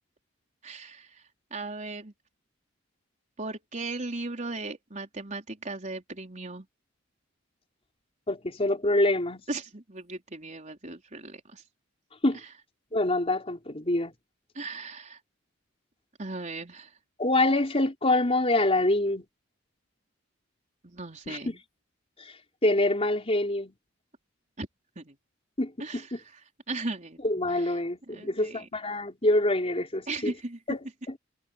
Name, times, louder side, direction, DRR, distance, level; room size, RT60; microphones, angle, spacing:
voice 1, 0.6-1.2 1.5-2.1 3.4-6.7 9.5-11.6 14.5-15.2 16.2-16.9 20.8-21.6 24.6-24.7 25.0-25.2 25.8-26.2 26.7-27.2 28.1-28.6 30.1-30.6, right 2 dB, 40° right, 4.5 m, -37 dB
voice 2, 8.3-9.4 12.2-12.4 12.9-14.1 17.2-19.2 21.3-21.5 22.2-22.3 22.6-23.7 25.6-26.2 27.2-30.3 30.7-31.2, left 1 dB, 30° left, 4.3 m, -26 dB
head